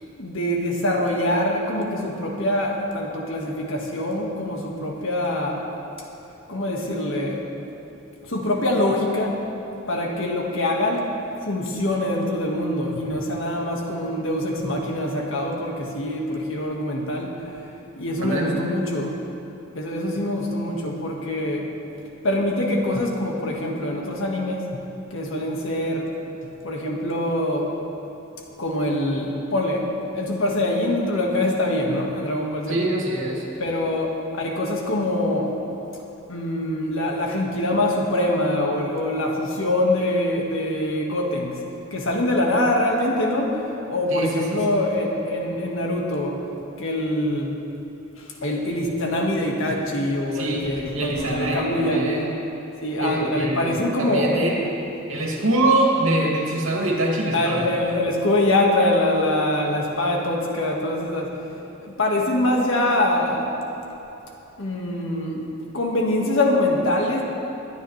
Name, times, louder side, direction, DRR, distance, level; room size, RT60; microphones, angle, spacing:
voice 1, 0.2-5.7 6.5-7.5 8.2-9.4 9.9-11.1 11.4-19.2 19.7-21.7 22.2-24.8 25.1-26.1 26.6-27.8 28.6-32.8 33.6-35.5 36.3-41.6 41.9-46.4 46.8-47.6 48.2-52.2 52.8-54.4 57.3-61.4 61.8-63.5 64.6-65.5 65.7-67.2, left 1 dB, 70° left, 0 dB, 1.6 m, -24 dB
voice 2, 32.7-33.4 44.1-44.8 50.3-50.7 50.9-52.4 53.0-54.7 55.1-57.6, right 1 dB, 85° right, -2 dB, 2.3 m, -24 dB
22.0 x 9.3 x 3.2 m, 2.9 s
head